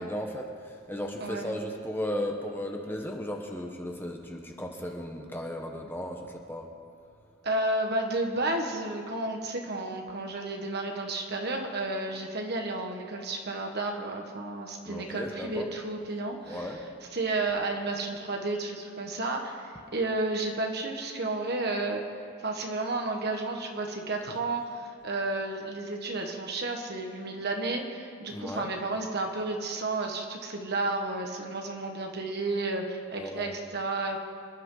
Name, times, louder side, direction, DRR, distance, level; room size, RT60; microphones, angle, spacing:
voice 1, 0.0-6.7 14.8-15.7 16.5-16.8 28.3-28.7 33.2-33.6, equal, 10° left, 2 dB, 1.0 m, -35 dB
voice 2, 7.4-16.7 17.1-22.0 22.4-34.2, right 2 dB, 50° right, 3 dB, 1.6 m, -32 dB
26.5 x 11.0 x 4.0 m, 2.3 s
head